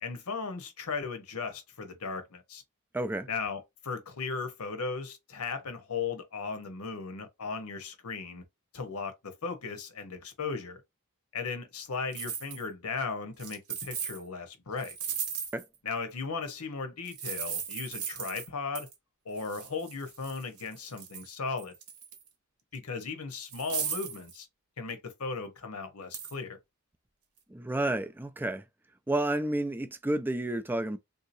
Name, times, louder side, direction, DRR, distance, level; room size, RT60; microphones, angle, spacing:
voice 1, 0.0-2.6 3.3-8.4 8.7-10.8 11.3-15.0 15.8-18.9 19.2-21.7 22.7-24.5 24.8-26.6, left 4 dB, 85° left, 1.0 m, -36 dB
voice 2, 2.9-3.3 15.5-15.6 27.5-28.6 29.1-31.0, right 1 dB, 10° right, 0.3 m, -30 dB
sound 1, 12.1-12.7 13.4-14.2 14.8-15.8 17.1-18.5 18.8-18.9 19.4-21.3 21.6-22.3 22.8-22.9 23.5-24.4 26.1-26.3, right 7 dB, 85° right, 0.9 m, -37 dB
3.6 x 2.8 x 2.6 m
head